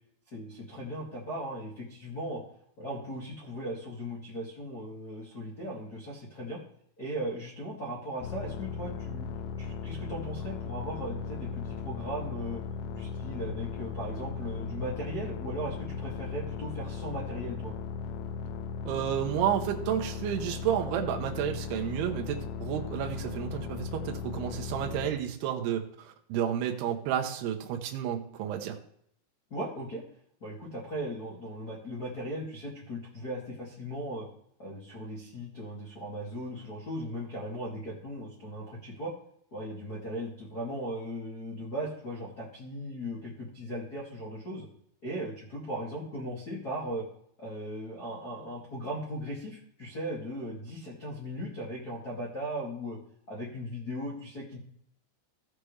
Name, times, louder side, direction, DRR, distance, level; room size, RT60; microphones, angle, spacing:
voice 1, 0.3-2.4 2.8-6.6 7.0-9.3 9.6-12.6 12.9-17.7 29.5-30.0 30.4-34.3 34.6-39.1 39.5-44.7 45.0-47.0 47.4-53.0 53.3-54.6, equal, 50° left, -7 dB, 1.0 m, -38 dB
sound 1, 8.2-25.1, left 5 dB, 80° left, 2.6 m, -37 dB
voice 2, 18.9-28.8, right 10 dB, 80° right, 3 dB, 2.3 m, -31 dB
16.0 x 6.8 x 3.2 m, 0.69 s
omnidirectional pair, 5.9 m